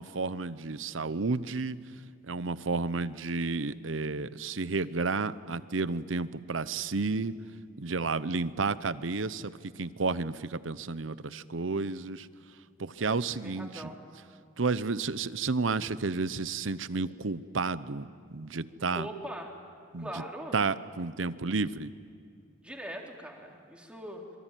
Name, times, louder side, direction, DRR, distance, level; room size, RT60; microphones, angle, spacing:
voice 1, 0.0-1.8 2.2-7.3 7.8-12.3 12.8-13.9 14.6-19.1 19.9-20.2 20.5-21.9, right 4 dB, 75° right, 15 dB, 0.9 m, -31 dB
voice 2, 13.0-14.0 18.9-19.6 20.0-20.6 22.6-24.2, equal, 5° right, 0 dB, 3.6 m, -41 dB
26.5 x 23.5 x 9.2 m, 2.3 s
head